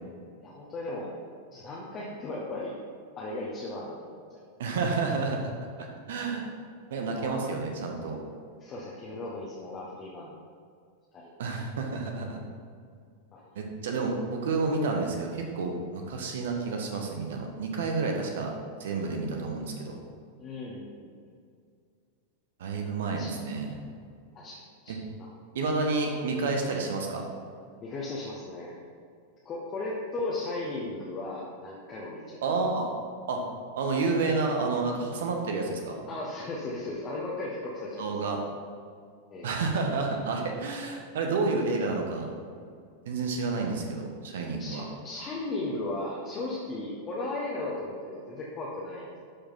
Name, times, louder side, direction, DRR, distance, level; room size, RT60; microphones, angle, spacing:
voice 1, 0.4-1.1 1.5-2.8 3.2-4.4 7.1-7.4 8.6-10.3 11.1-11.3 13.3-13.4 20.4-21.3 23.2-23.4 24.3-24.9 25.2-25.3 27.8-28.7 29.4-32.4 36.1-38.4 39.3-39.5 44.6-49.1, left 2 dB, 30° left, -5 dB, 1.3 m, -36 dB
voice 2, 4.6-5.5 5.8-6.5 6.9-8.2 11.4-12.4 13.5-18.5 18.8-20.0 22.6-23.8 24.9-25.0 25.5-27.3 32.4-32.9 33.3-33.4 33.8-36.0 38.0-38.4 39.4-42.3 43.0-44.8, right 3 dB, 60° right, 2 dB, 1.3 m, -30 dB
11.5 x 5.1 x 3.9 m, 2.2 s
figure-of-eight pair, 90°, 0 cm